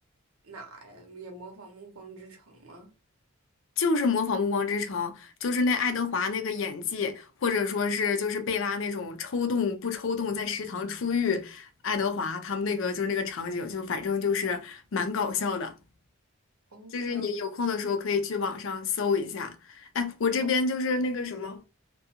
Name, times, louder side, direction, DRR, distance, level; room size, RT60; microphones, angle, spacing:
voice 1, 0.4-2.9 16.7-17.3, right 1 dB, 90° right, 0.8 m, -45 dB
voice 2, 3.8-15.7 16.9-21.6, left 5 dB, 65° left, 0.4 m, -28 dB
2.4 x 2.2 x 2.7 m
head